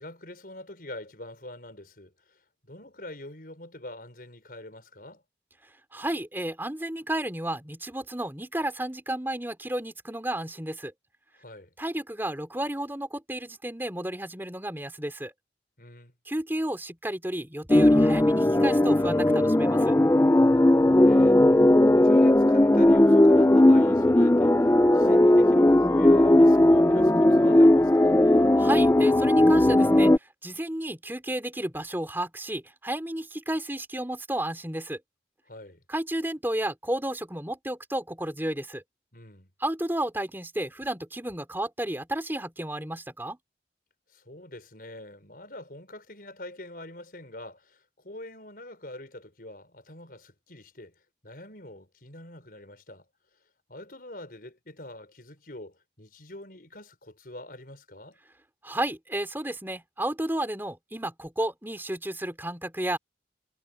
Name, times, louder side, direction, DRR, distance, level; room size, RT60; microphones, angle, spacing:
voice 1, 0.0-5.2 11.4-11.7 15.8-16.1 20.5-28.2 35.5-35.8 39.1-39.5 44.1-50.9 51.2-53.1 53.7-58.2, left 1 dB, 55° left, 5.9 m, -45 dB
voice 2, 5.9-10.9 11.8-15.3 16.3-19.9 28.6-35.0 35.9-38.8 39.6-43.4 58.6-63.0, right 1 dB, 10° right, 3.3 m, -32 dB
sound 1, 17.7-30.2, left 1 dB, 15° left, 0.5 m, -18 dB
head